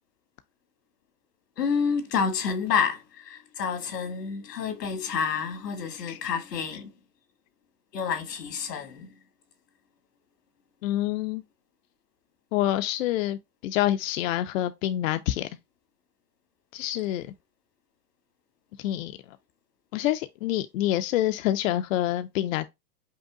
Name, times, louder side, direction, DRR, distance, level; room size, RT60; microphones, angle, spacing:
voice 1, 1.6-6.9 7.9-9.1, left 6 dB, 85° left, 1.4 m, -29 dB
voice 2, 10.8-11.4 12.5-15.5 16.7-17.3 18.8-19.4 19.9-22.7, left 13 dB, 55° left, 0.5 m, -27 dB
5.4 x 2.2 x 3.7 m
hypercardioid pair, 120°, 47 cm